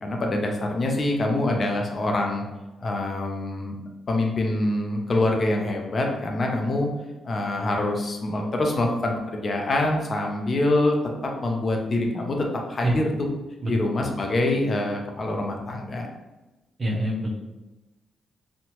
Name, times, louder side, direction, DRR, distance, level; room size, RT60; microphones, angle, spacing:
voice 1, 0.0-2.4 2.8-3.7 4.1-6.9 7.2-11.0 11.2-13.3 13.7-16.1, left 2 dB, 40° left, 1 dB, 0.5 m, -25 dB
voice 2, 16.8-17.4, right 1 dB, 40° right, 0 dB, 0.6 m, -25 dB
2.8 x 2.1 x 2.9 m, 1.1 s
cardioid pair, 80°, 0 cm